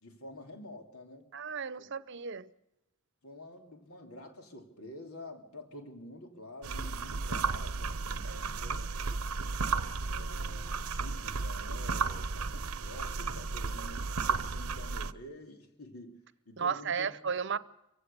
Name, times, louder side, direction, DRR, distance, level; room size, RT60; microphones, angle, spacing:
voice 1, 0.0-1.3 1.8-1.9 3.2-9.0 10.1-16.2 16.4-17.4, left 1 dB, 85° left, 3.1 m, -48 dB
voice 2, 1.3-2.5 8.2-8.4 16.6-17.6, right 6 dB, 55° right, 0.8 m, -34 dB
sound 1, 6.6-15.1, right 4 dB, 90° right, 0.8 m, -34 dB
25.5 x 16.0 x 6.9 m
head